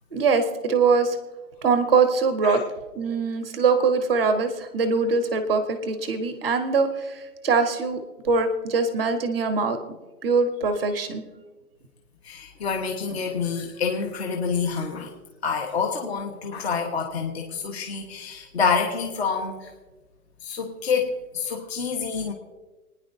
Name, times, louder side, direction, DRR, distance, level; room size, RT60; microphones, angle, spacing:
voice 1, 0.1-1.2 1.6-2.6 2.9-8.0 8.2-9.8 10.2-11.2, right 4 dB, 15° right, 7 dB, 0.7 m, -22 dB
voice 2, 12.2-15.1 15.4-19.7 20.4-22.3, left 5 dB, 45° left, 2 dB, 1.3 m, -27 dB
29.5 x 10.0 x 2.7 m, 1.2 s
hypercardioid pair, 175°, 46 cm